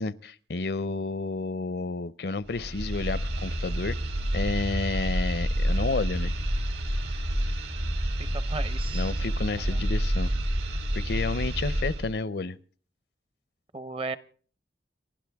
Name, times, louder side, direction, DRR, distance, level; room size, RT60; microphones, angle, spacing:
voice 1, 0.0-4.0 4.3-6.3 8.9-10.3 10.9-12.6, left 3 dB, 65° left, 0.6 m, -31 dB
sound 1, 2.5-12.1, equal, 65° right, 2.3 m, -28 dB
voice 2, 8.3-9.1 9.7-9.8 13.7-14.2, right 3 dB, 30° right, 0.7 m, -35 dB
30.0 x 12.0 x 3.5 m
head